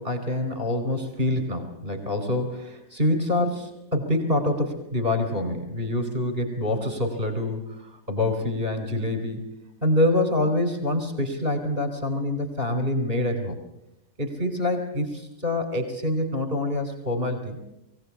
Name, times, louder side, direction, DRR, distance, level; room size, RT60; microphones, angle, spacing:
voice 1, 0.0-9.4 9.8-13.6 14.2-17.6, left 1 dB, 35° right, 7 dB, 4.6 m, -26 dB
23.0 x 17.0 x 8.5 m, 0.88 s
omnidirectional pair, 1.7 m